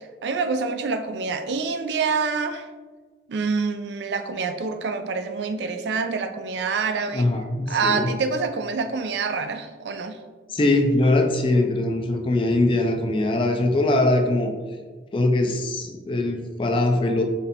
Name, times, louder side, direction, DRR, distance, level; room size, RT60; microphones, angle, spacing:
voice 1, 0.2-2.7 3.3-7.3 7.7-10.2, right 4 dB, 80° right, 7 dB, 0.4 m, -26 dB
voice 2, 7.1-8.1 10.5-14.5 15.1-17.2, left 2 dB, 30° left, 4 dB, 0.4 m, -22 dB
4.2 x 3.2 x 2.8 m, 1.4 s
head